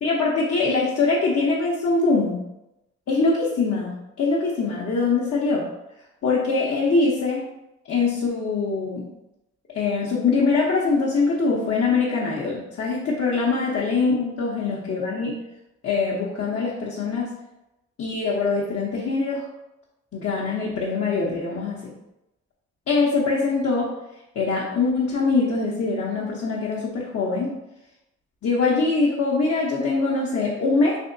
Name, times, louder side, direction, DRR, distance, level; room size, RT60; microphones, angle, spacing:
voice 1, 0.0-2.4 3.1-5.6 6.2-7.4 7.9-9.1 9.7-15.4 15.8-17.3 18.0-19.4 20.1-21.9 22.9-23.9 24.3-27.5 28.4-31.0, left 4 dB, 55° left, -5 dB, 0.8 m, -23 dB
3.4 x 2.7 x 2.6 m, 0.91 s
cardioid pair, 60°, 30 cm